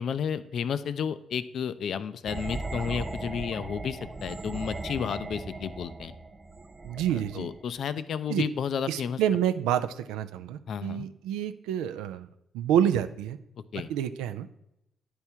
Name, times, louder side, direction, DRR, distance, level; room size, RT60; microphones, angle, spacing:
voice 1, 0.0-6.1 7.1-9.2 10.7-11.1 13.7-13.9, left 7 dB, 65° left, 14 dB, 0.4 m, -32 dB
sound 1, 2.3-7.7, right 2 dB, 30° right, 0.5 m, -38 dB
voice 2, 6.8-7.5 8.3-8.4 8.9-12.3 12.5-13.4 13.9-14.5, right 10 dB, 90° right, 11 dB, 0.3 m, -28 dB
9.6 x 3.5 x 4.4 m, 0.81 s
supercardioid pair, 60°, 0 cm